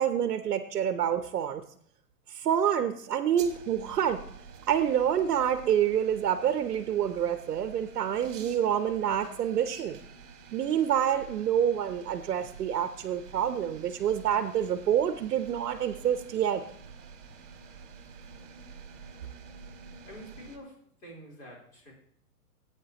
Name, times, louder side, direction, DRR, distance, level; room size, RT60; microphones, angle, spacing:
voice 1, 0.0-1.6 2.3-4.2 4.7-10.0 10.5-16.6, right 9 dB, 80° right, 9 dB, 0.9 m, -27 dB
sound 1, 3.4-20.6, right 5 dB, 55° right, 1.7 m, -49 dB
voice 2, 20.1-21.9, equal, 20° left, -3 dB, 3.9 m, -47 dB
15.5 x 8.7 x 2.9 m, 0.67 s
hypercardioid pair, 160°, 46 cm